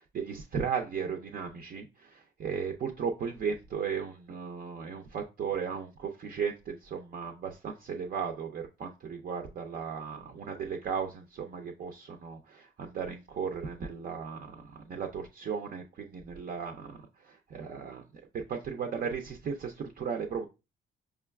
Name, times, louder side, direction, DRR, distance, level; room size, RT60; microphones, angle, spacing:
voice 1, 0.0-18.0 18.3-20.5, right 6 dB, 50° right, 0.5 m, -36 dB
4.9 x 2.3 x 2.2 m
cardioid pair, 90°, 20 cm